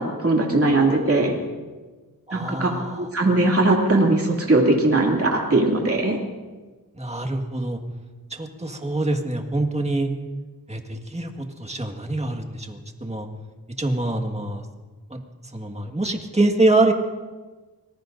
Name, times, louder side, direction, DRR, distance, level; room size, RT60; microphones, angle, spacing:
voice 1, 0.0-1.3 2.3-6.2, right 2 dB, 40° right, -1 dB, 2.7 m, -20 dB
voice 2, 2.3-3.1 6.9-7.8 8.3-10.1 10.7-11.3 11.6-13.3 13.8-14.6 15.1-15.2 15.5-16.9, right 2 dB, 15° right, 3 dB, 1.8 m, -24 dB
25.5 x 19.5 x 2.7 m, 1.3 s
wide cardioid pair, 60°, 37 cm